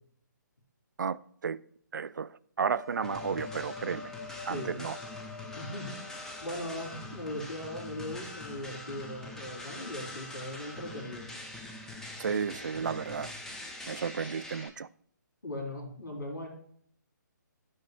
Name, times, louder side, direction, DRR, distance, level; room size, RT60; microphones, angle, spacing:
voice 1, 1.0-1.6 1.9-4.1 4.5-5.0 12.2-13.3 13.9-14.9, right 6 dB, 70° right, 0.4 m, -33 dB
sound 1, 2.7-7.1, left 5 dB, 30° left, 1.6 m, -46 dB
sound 2, 3.0-14.7, left 2 dB, 5° left, 0.6 m, -44 dB
voice 2, 4.5-4.8 5.6-6.0 6.4-11.2 15.4-16.5, left 1 dB, 90° left, 3.5 m, -39 dB
12.0 x 5.3 x 2.5 m
figure-of-eight pair, 140°, 10 cm